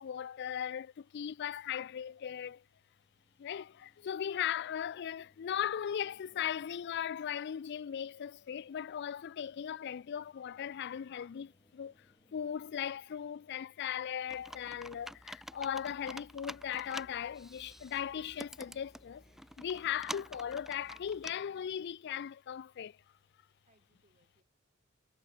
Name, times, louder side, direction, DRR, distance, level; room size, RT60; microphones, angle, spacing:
voice 1, 0.0-2.6 3.4-11.9 12.3-19.2 19.6-23.0, left 9 dB, 55° left, 0.3 m, -38 dB
sound 1, 2.5-21.9, left 1 dB, 20° left, 6.7 m, -71 dB
voice 2, 4.0-4.8 16.1-16.4 19.8-20.3 23.7-24.4, right 2 dB, 35° right, 5.7 m, -73 dB
Computer keyboard, 14.3-21.3, equal, ahead, 1.0 m, -48 dB
head